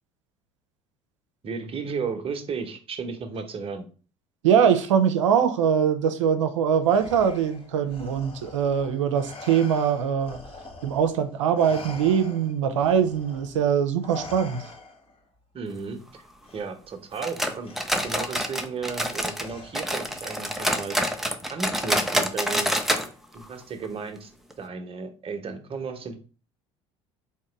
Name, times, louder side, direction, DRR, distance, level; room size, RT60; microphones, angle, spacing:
voice 1, 1.4-3.9 15.5-16.2 16.5-17.7 18.0-21.0 21.5-22.7 23.3-24.3 24.6-26.2, right 5 dB, 35° right, 1.0 m, -34 dB
voice 2, 4.4-10.4 10.8-14.6, right 8 dB, 90° right, 0.6 m, -22 dB
Respiratory sounds, 6.8-11.2 11.5-15.2 16.4-16.6 17.6-18.2 19.4-20.0, left 2 dB, 35° left, 1.5 m, -43 dB
sound 1, 17.2-19.5 19.7-23.1 23.3-23.4 23.8-23.9 24.5-24.6, equal, ahead, 0.7 m, -27 dB
3.6 x 2.9 x 4.5 m
hypercardioid pair, 70°, 15 cm